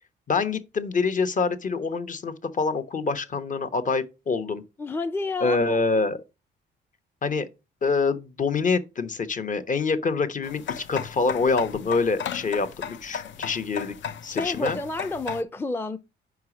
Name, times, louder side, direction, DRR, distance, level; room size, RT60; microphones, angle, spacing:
voice 1, 0.3-4.6 5.4-6.2 7.2-7.5 7.8-13.9 14.2-14.8, left 4 dB, 40° left, 1.0 m, -26 dB
voice 2, 4.8-5.8 14.2-16.0, left 2 dB, 10° left, 0.5 m, -30 dB
sound 1, 10.4-15.4, left 7 dB, 70° left, 0.7 m, -35 dB
4.9 x 4.6 x 6.0 m
cardioid pair, 90°, 20 cm